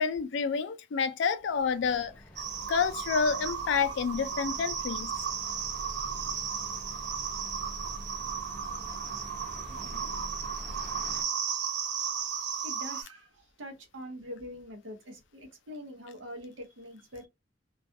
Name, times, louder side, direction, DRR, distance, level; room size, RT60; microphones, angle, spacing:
voice 1, 0.0-2.1 2.7-5.1, left 5 dB, 70° left, 0.4 m, -29 dB
sound 1, 1.4-11.2, equal, 5° left, 0.6 m, -45 dB
sound 2, 2.4-13.0, right 7 dB, 60° right, 0.5 m, -35 dB
voice 2, 9.7-10.1 11.7-11.8 12.6-17.3, equal, 85° right, 0.8 m, -44 dB
2.3 x 2.2 x 2.6 m
head